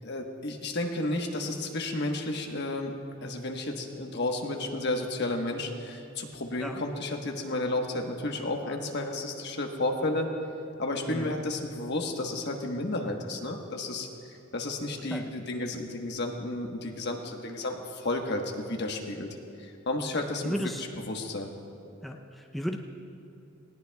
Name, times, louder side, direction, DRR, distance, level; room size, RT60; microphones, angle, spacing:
voice 1, 0.0-2.9 3.2-10.3 10.8-19.3 19.6-20.6 21.1-21.5, left 2 dB, 55° left, 2 dB, 1.2 m, -32 dB
voice 2, 20.4-20.8 22.0-22.8, equal, ahead, 1 dB, 0.6 m, -34 dB
19.5 x 18.0 x 2.3 m, 2.7 s
head